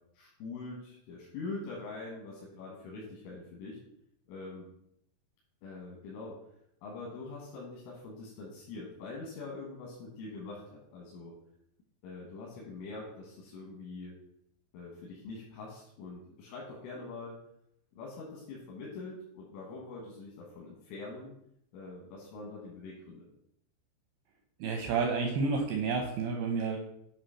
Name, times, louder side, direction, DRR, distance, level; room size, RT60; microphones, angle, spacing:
voice 1, 0.2-3.8 4.3-4.7 5.6-6.4 6.8-11.4 12.0-14.1 14.7-17.4 17.9-21.3 21.7-23.3, left 3 dB, 85° left, -3 dB, 3.9 m, -44 dB
voice 2, 24.6-26.8, right 4 dB, 80° right, 2 dB, 2.3 m, -30 dB
8.9 x 3.1 x 5.6 m, 0.75 s
omnidirectional pair, 5.4 m